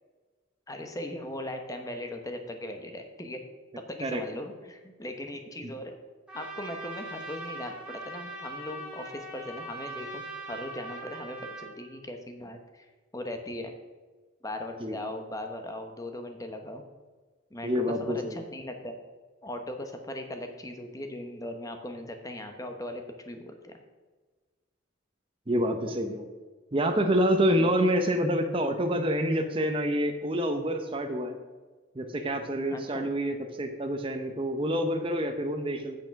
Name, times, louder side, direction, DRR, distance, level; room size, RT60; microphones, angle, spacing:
voice 1, 0.7-3.4 3.9-6.0 6.3-12.9 13.1-13.7 14.4-16.8 17.5-19.0 19.4-23.8 27.6-27.8 32.7-33.1, left 1 dB, 15° left, 5 dB, 0.9 m, -39 dB
Trumpet, 6.3-11.7, right 2 dB, 5° right, 2.0 m, -41 dB
voice 2, 14.8-15.1 17.6-18.4 25.5-26.3 26.7-31.4 31.9-36.0, equal, 25° right, 5 dB, 0.6 m, -27 dB
8.5 x 6.7 x 5.8 m, 1.3 s
head